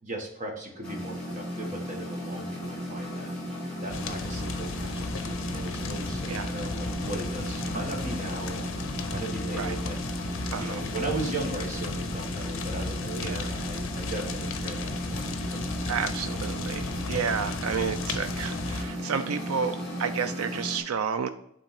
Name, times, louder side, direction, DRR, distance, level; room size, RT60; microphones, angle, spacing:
voice 1, 0.0-3.3 3.8-8.7 9.1-10.2 10.6-15.6, right 2 dB, 35° right, 1 dB, 1.4 m, -37 dB
sound 1, 0.8-20.8, equal, 5° left, 2.6 m, -35 dB
sound 2, 3.9-18.8, left 3 dB, 65° left, 0.7 m, -35 dB
voice 2, 10.5-10.8 13.1-13.5 15.9-21.3, right 6 dB, 80° right, 9 dB, 0.4 m, -31 dB
8.8 x 3.5 x 5.7 m, 0.77 s
head